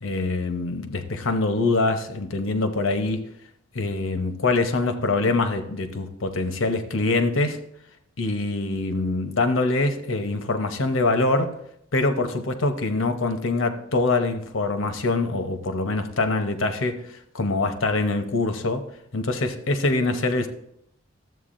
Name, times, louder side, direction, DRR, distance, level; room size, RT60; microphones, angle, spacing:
voice 1, 0.0-3.3 3.7-7.7 8.2-11.6 11.9-18.8 19.1-20.5, left 2 dB, 75° left, 0.9 m, -24 dB
13.0 x 7.9 x 2.6 m
head